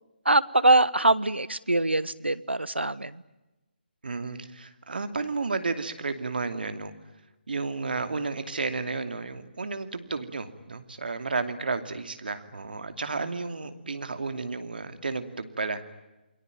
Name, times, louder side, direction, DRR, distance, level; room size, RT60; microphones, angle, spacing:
voice 1, 0.2-3.1, right 2 dB, 80° right, 17 dB, 1.3 m, -23 dB
voice 2, 4.0-6.9 7.5-15.8, right 4 dB, 60° right, 9 dB, 2.7 m, -32 dB
29.5 x 22.0 x 9.1 m, 1.0 s
figure-of-eight pair, 145°, 6 cm